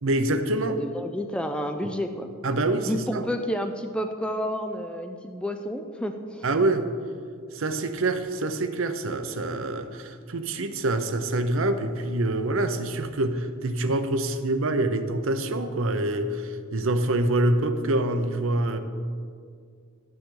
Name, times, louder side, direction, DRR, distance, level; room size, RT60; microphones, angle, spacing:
voice 1, 0.0-0.8 2.4-3.3 6.4-6.9 7.5-18.8, right 2 dB, 70° right, 9 dB, 0.7 m, -26 dB
voice 2, 0.7-2.3 2.9-6.5, equal, 5° left, 6 dB, 0.4 m, -30 dB
12.0 x 9.2 x 3.8 m, 2.1 s
head